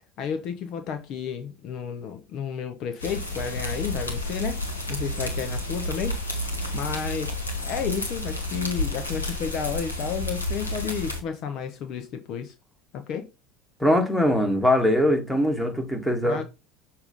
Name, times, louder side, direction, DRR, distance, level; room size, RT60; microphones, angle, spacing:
voice 1, 0.2-4.6 4.9-6.2 6.7-7.4 7.6-12.5 12.9-13.3 16.2-16.4, left 7 dB, 45° left, 0.8 m, -32 dB
sound 1, 3.0-11.2, left 1 dB, 85° left, 1.3 m, -30 dB
voice 2, 13.8-16.4, left 1 dB, ahead, 1.8 m, -22 dB
6.9 x 2.8 x 5.3 m
figure-of-eight pair, 70°, 0 cm